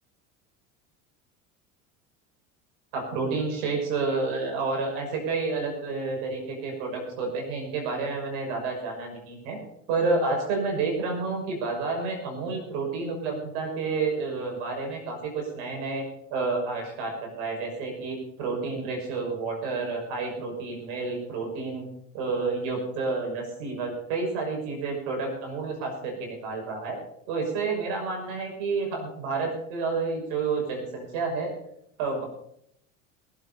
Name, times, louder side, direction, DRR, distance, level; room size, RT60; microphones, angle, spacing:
voice 1, 2.9-9.6 9.9-16.0 16.3-21.9 22.1-27.0 27.3-31.5 32.0-32.2, right 4 dB, 75° right, 1 dB, 6.1 m, -30 dB
21.5 x 8.2 x 5.5 m, 0.73 s
supercardioid pair, 90°, 37 cm